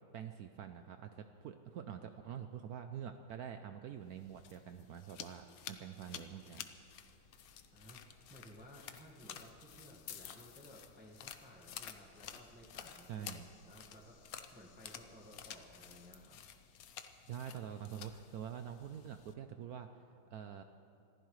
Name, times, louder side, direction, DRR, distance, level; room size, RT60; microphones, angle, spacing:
voice 1, 0.1-6.6 13.1-13.5 17.3-19.9 20.3-20.6, right 8 dB, 80° right, 8 dB, 0.8 m, -46 dB
sound 1, 4.1-19.3, left 9 dB, 65° left, 0.9 m, -52 dB
Printer, 6.6-17.0, left 2 dB, 80° left, 3.0 m, -69 dB
voice 2, 7.7-16.4, equal, 5° right, -2 dB, 1.2 m, -57 dB
25.5 x 15.0 x 3.2 m, 2.5 s
omnidirectional pair, 2.2 m